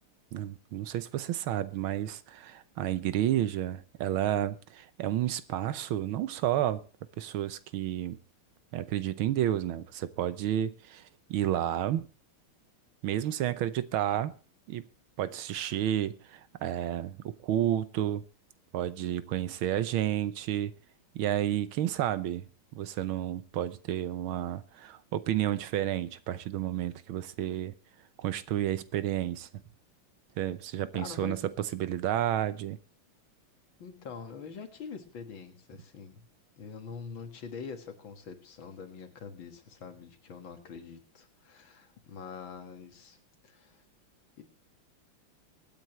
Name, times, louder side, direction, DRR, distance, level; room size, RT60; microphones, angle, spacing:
voice 1, 0.3-6.8 7.2-8.2 8.7-12.1 13.0-14.4 14.7-14.9 15.2-18.2 18.7-20.7 21.1-22.4 22.7-27.7 28.2-29.5 30.4-32.8, right 12 dB, 75° right, 1.6 m, -31 dB
voice 2, 30.9-31.4 33.8-36.3 36.6-43.2 43.4-43.8 44.4-44.5, left 5 dB, 65° left, 2.5 m, -44 dB
24.0 x 9.0 x 3.1 m
omnidirectional pair, 2.4 m